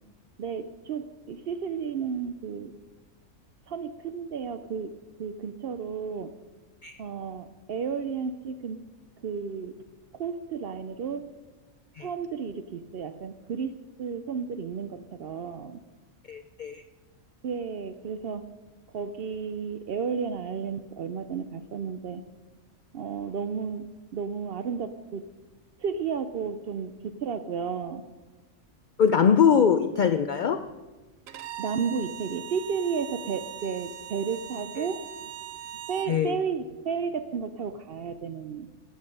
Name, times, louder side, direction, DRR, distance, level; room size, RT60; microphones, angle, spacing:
voice 1, 0.4-2.7 3.7-4.9 5.2-6.3 7.0-8.8 9.2-9.7 10.1-11.3 12.0-15.8 17.4-18.5 18.9-22.2 22.9-23.9 24.1-25.3 25.8-28.0 31.6-35.3 35.9-38.7, right 6 dB, 60° right, 11 dB, 0.6 m, -33 dB
voice 2, 16.3-16.8 29.0-30.6 34.8-34.9 36.1-36.4, left 7 dB, 65° left, 10 dB, 0.4 m, -22 dB
Bowed string instrument, 31.3-36.2, right 10 dB, 85° right, 1.1 m, -40 dB
14.5 x 8.0 x 5.3 m, 1.3 s
omnidirectional pair, 1.3 m